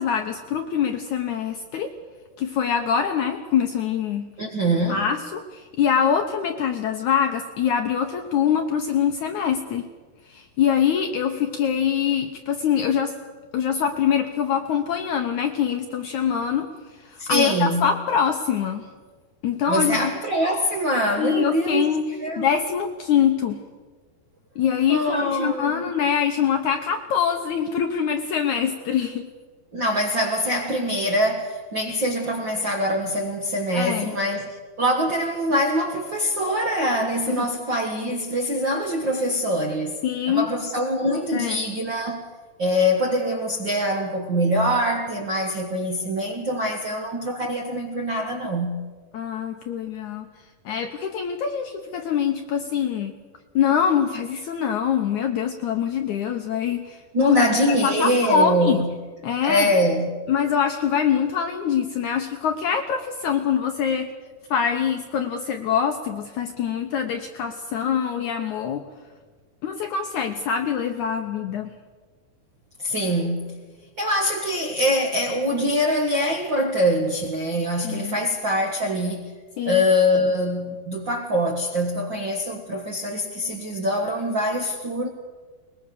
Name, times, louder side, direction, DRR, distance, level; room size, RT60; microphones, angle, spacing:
voice 1, 0.0-1.9 2.4-4.3 4.9-9.9 10.3-13.2 13.5-16.7 17.1-18.9 19.4-20.1 21.2-23.6 24.6-29.3 33.8-34.1 37.4-37.5 40.0-40.5 41.3-41.6 49.1-50.3 50.7-53.2 53.6-58.8 59.2-59.7 60.3-64.1 64.5-68.8 69.6-71.7 77.8-78.2 79.6-79.8, left 7 dB, 70° left, 1.8 m, -24 dB
voice 2, 4.4-5.1 17.2-17.9 19.7-22.5 24.9-25.9 29.7-42.3 42.6-48.8 57.1-58.9 59.4-60.1 72.8-73.6 74.0-79.3 79.6-85.1, equal, 55° right, 1.3 m, -24 dB
21.5 x 21.0 x 6.8 m
omnidirectional pair, 4.5 m